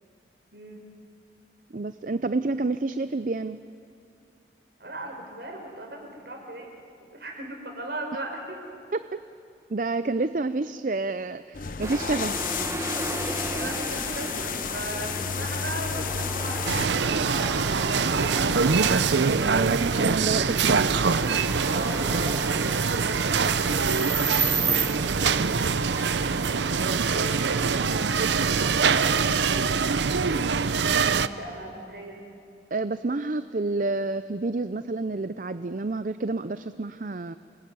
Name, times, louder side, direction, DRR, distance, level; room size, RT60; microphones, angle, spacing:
voice 1, 0.5-0.9 4.8-6.7 7.1-8.6 13.5-18.8 21.7-25.5 27.1-30.2 31.0-32.2, right 1 dB, 60° right, 2 dB, 5.2 m, -38 dB
voice 2, 1.7-3.6 8.9-9.2 9.7-12.5 19.2-21.1 26.8-27.1 32.7-37.4, right 3 dB, 45° right, 12 dB, 0.5 m, -29 dB
sound 1, 11.5-16.9, left 6 dB, 50° left, 0.7 m, -32 dB
sound 2, 11.8-28.7, right 3 dB, 15° right, 1.6 m, -34 dB
sound 3, 16.7-31.3, right 5 dB, 80° right, 0.7 m, -24 dB
29.0 x 20.0 x 9.5 m, 2.5 s
head